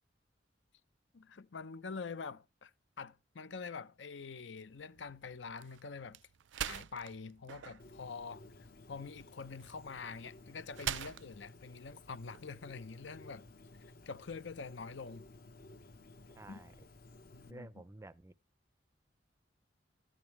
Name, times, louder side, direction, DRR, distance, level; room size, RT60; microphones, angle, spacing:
voice 1, 1.1-2.7 3.0-6.2 6.7-8.5 8.9-13.4 14.1-15.2 16.5-16.6 17.3-17.7, left 5 dB, 85° left, 0.7 m, -45 dB
sound 1, 4.7-12.9, right 10 dB, 85° right, 0.4 m, -46 dB
Bird, 7.8-17.5, left 2 dB, 55° left, 1.0 m, -56 dB
voice 2, 16.4-16.7 17.5-18.3, right 2 dB, 15° right, 0.4 m, -51 dB
12.5 x 9.0 x 3.1 m
head